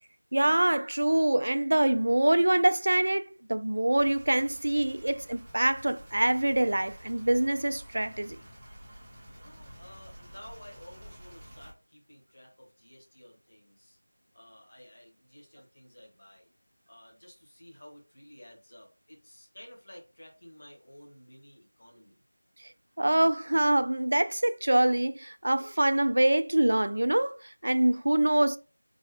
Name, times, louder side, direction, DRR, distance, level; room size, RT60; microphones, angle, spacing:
voice 1, 0.3-8.4 23.0-28.6, right 1 dB, 55° right, 0.3 m, -25 dB
sound 1, 4.0-11.7, equal, 15° right, 1.0 m, -50 dB
voice 2, 9.3-14.0 14.3-16.5 16.9-22.1, left 1 dB, 50° left, 2.1 m, -52 dB
4.5 x 2.9 x 3.4 m
figure-of-eight pair, 175°, 0 cm